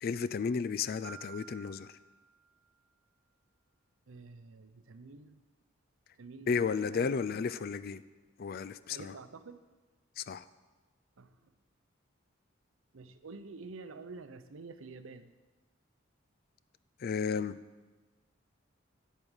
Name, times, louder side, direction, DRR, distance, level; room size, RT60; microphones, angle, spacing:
voice 1, 0.0-1.9 6.5-8.0 8.4-9.1 10.2-10.5 17.0-17.6, left 5 dB, 45° left, 15 dB, 0.3 m, -33 dB
Piano, 1.0-2.9, right 9 dB, 15° right, 2.1 m, -52 dB
voice 2, 4.1-5.4 6.1-7.5 8.9-9.6 11.2-11.5 12.9-15.3, right 3 dB, 80° right, 11 dB, 0.7 m, -49 dB
8.8 x 8.3 x 6.3 m, 1.2 s
head